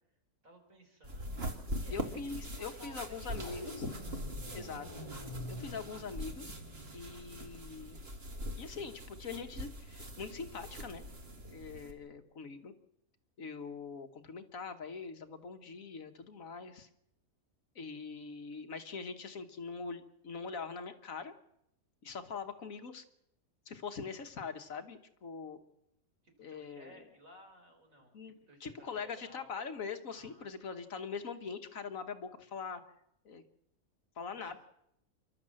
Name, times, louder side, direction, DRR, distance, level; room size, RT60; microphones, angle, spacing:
voice 1, 0.4-2.0 2.6-3.5 26.2-28.1 28.5-29.5 30.1-30.5 34.3-34.6, right 1 dB, 60° right, 3 dB, 4.3 m, -57 dB
sound 1, 1.0-11.9, equal, 40° right, 2.3 m, -43 dB
voice 2, 1.9-3.9 4.5-4.9 5.5-6.6 6.9-8.0 8.6-11.0 11.4-12.7 13.4-16.9 17.7-21.3 22.0-23.0 23.7-25.6 26.4-27.1 28.1-32.8 33.2-33.4 34.2-34.6, left 5 dB, 60° left, 7 dB, 1.6 m, -43 dB
sound 2, 3.3-7.6, left 1 dB, 20° left, 7.3 m, -47 dB
28.0 x 12.0 x 7.6 m, 0.80 s
omnidirectional pair, 1.6 m